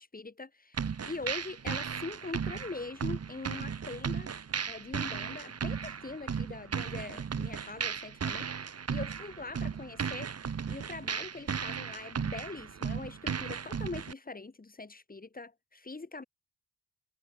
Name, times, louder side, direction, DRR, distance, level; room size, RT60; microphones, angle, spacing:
voice 1, 0.0-4.3 4.7-10.3 10.7-16.2, left 3 dB, 25° left, 3.8 m, -42 dB
sound 1, 0.7-14.1, right 6 dB, 40° right, 1.6 m, -36 dB
wide cardioid pair, 130°, 37 cm